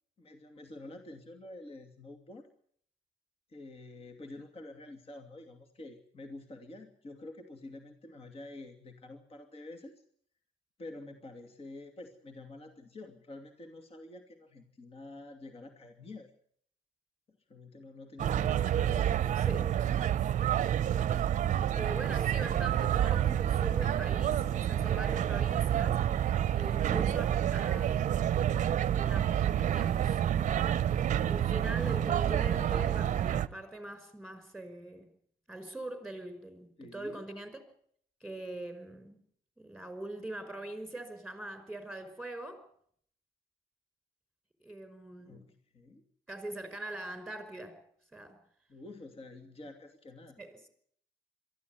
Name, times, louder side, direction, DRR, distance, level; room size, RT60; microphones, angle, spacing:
voice 1, 0.2-2.5 3.5-9.9 10.8-16.3 17.3-19.3 27.0-27.5 36.8-37.2 45.2-45.5 45.7-46.0 48.7-50.4, left 2 dB, 35° left, 2.6 m, -48 dB
sound 1, 18.2-33.5, right 10 dB, 45° right, 0.8 m, -28 dB
voice 2, 19.4-19.8 21.8-26.0 26.5-28.5 28.9-30.7 31.3-35.1 35.5-37.6 38.2-39.2 39.6-42.7 44.6-45.5 46.3-47.8 48.1-48.4 50.4-50.7, right 1 dB, ahead, 5.4 m, -42 dB
23.0 x 14.0 x 9.4 m
cardioid pair, 110°, 17 cm